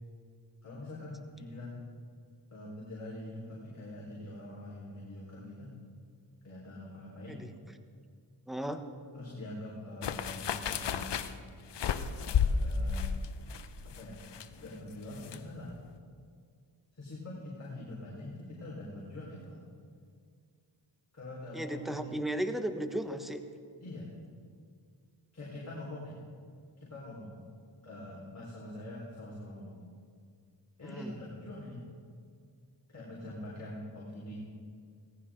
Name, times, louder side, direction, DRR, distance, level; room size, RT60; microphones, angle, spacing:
voice 1, 0.6-1.8 2.5-5.7 6.4-7.4 9.1-11.2 12.2-13.1 13.8-14.2 14.6-15.7 16.9-19.6 21.1-22.1 23.8-24.1 25.3-26.2 26.8-27.4 27.8-29.8 30.8-31.8 32.9-34.4, left 1 dB, 35° left, -7 dB, 4.4 m, -44 dB
voice 2, 8.5-8.8 21.5-23.4 30.8-31.1, right 1 dB, ahead, 7 dB, 1.2 m, -35 dB
sound 1, 10.0-15.4 15.7-15.8, left 6 dB, 60° left, 0.8 m, -32 dB
18.0 x 15.0 x 3.8 m, 2.1 s
cardioid pair, 60°, 47 cm